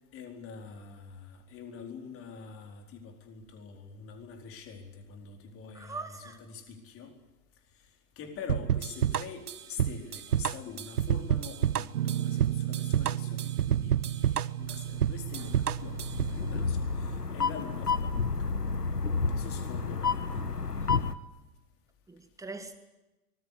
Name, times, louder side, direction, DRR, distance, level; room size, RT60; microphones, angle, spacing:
voice 1, 0.1-7.2 7.7-7.9 8.2-18.6 19.3-20.5, left 6 dB, 30° left, 4 dB, 4.4 m, -45 dB
voice 2, 5.7-6.4 15.4-15.5 22.1-22.8, right 3 dB, 5° right, 8 dB, 2.1 m, -42 dB
sound 1, 8.5-16.4, right 9 dB, 75° right, 0.9 m, -29 dB
Guitar, 11.9-17.2, right 13 dB, 55° right, 1.1 m, -35 dB
sound 2, 14.6-21.1, left 4 dB, 85° left, 1.4 m, -31 dB
25.0 x 20.5 x 8.6 m, 1.0 s
figure-of-eight pair, 105°, 46 cm